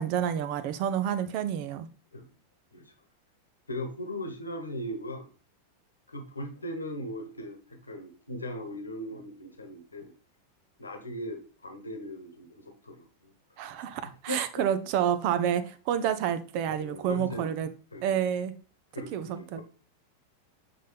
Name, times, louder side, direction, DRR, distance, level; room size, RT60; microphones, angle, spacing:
voice 1, 0.0-1.9 13.6-17.7 18.0-18.5 19.1-19.6, right 9 dB, 45° right, 0.8 m, -29 dB
voice 2, 3.7-5.3 6.1-10.1 10.8-14.0 14.3-14.7 16.6-17.5 17.9-18.2 18.9-19.6, equal, 80° left, 1.3 m, -39 dB
7.7 x 4.0 x 3.4 m
figure-of-eight pair, 90°, 0 cm